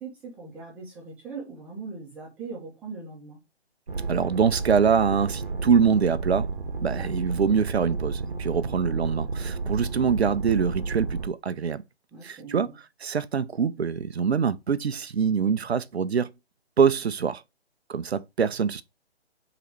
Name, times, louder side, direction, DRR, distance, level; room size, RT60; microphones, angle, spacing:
voice 1, 0.0-3.4 6.9-7.2 12.1-12.7, right 4 dB, 5° right, 0.8 m, -40 dB
sound 1, 3.9-11.3, right 4 dB, 50° right, 0.9 m, -31 dB
voice 2, 4.1-6.5 6.8-11.8 12.2-12.7 13.0-16.3 16.8-17.4 17.9-18.8, right 6 dB, 70° right, 0.5 m, -24 dB
3.8 x 3.0 x 4.5 m
figure-of-eight pair, 140°, 33 cm